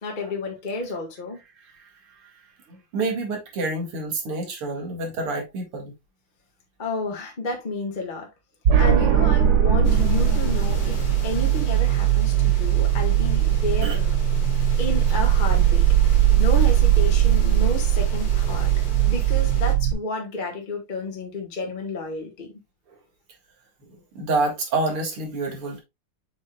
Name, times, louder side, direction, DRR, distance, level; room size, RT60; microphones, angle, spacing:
voice 1, 0.0-1.4 6.8-8.3 8.8-14.2 14.8-18.7 19.0-22.5, left 2 dB, 25° left, 1.4 m, -31 dB
voice 2, 2.7-5.9 13.8-14.0 16.3-16.4 23.9-25.8, right 3 dB, 85° right, 2.9 m, -28 dB
sound 1, 8.6-19.9, right 10 dB, 55° right, 1.3 m, -19 dB
sound 2, 9.8-19.7, left 2 dB, 45° left, 2.2 m, -38 dB
7.2 x 5.8 x 2.3 m
omnidirectional pair, 2.4 m